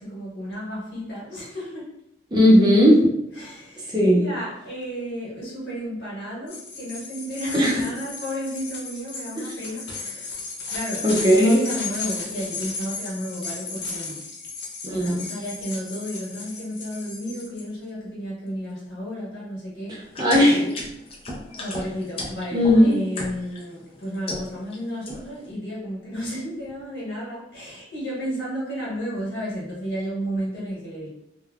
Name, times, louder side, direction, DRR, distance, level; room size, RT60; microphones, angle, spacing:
voice 1, 0.0-1.8 3.4-14.2 14.9-20.3 21.6-31.1, equal, 65° left, -7 dB, 1.4 m, -33 dB
voice 2, 2.3-3.0 3.9-4.2 7.5-7.8 9.4-9.5 11.0-11.6 14.8-15.2 19.9-20.7 22.5-22.9, equal, 25° right, -3 dB, 0.5 m, -17 dB
sound 1, 6.5-17.6, left 4 dB, 85° left, 0.7 m, -35 dB
smashing beans, 20.1-23.6 24.0-24.8 25.0-25.5, left 1 dB, 30° left, 0.5 m, -34 dB
3.2 x 2.1 x 2.3 m, 0.81 s
head